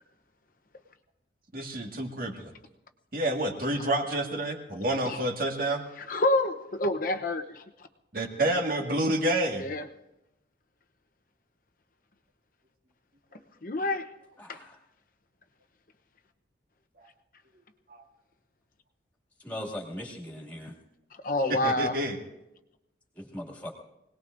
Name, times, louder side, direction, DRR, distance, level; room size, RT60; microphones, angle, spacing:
voice 1, 1.5-2.5 3.1-5.8 8.1-9.7 17.9-18.0 21.5-22.2, right 1 dB, 50° right, 2 dB, 1.8 m, -29 dB
voice 2, 6.1-7.6 9.5-9.8 13.6-14.1 14.5-14.6 21.2-21.9, left 1 dB, 45° left, 7 dB, 0.8 m, -27 dB
voice 3, 14.4-14.8 19.4-20.7 23.2-23.7, left 1 dB, 10° left, -2 dB, 2.3 m, -39 dB
25.0 x 19.0 x 2.6 m, 0.91 s
head